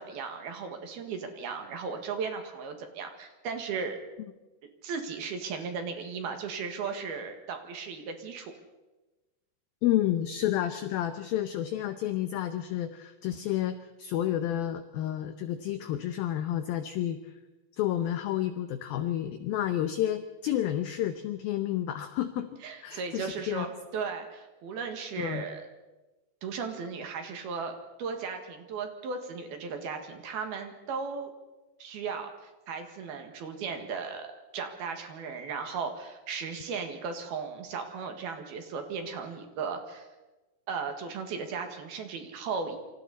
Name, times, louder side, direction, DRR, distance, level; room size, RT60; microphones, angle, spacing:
voice 1, 0.0-4.0 4.8-8.5 22.6-25.7 26.4-27.7 28.0-31.3 31.8-32.3 32.7-34.3 34.5-40.1 40.7-42.8, right 5 dB, 60° right, 5 dB, 3.4 m, -36 dB
voice 2, 9.8-17.3 17.8-23.7 25.2-25.4, left 12 dB, 85° left, 9 dB, 2.1 m, -30 dB
28.0 x 25.0 x 4.1 m, 1.1 s
omnidirectional pair, 5.3 m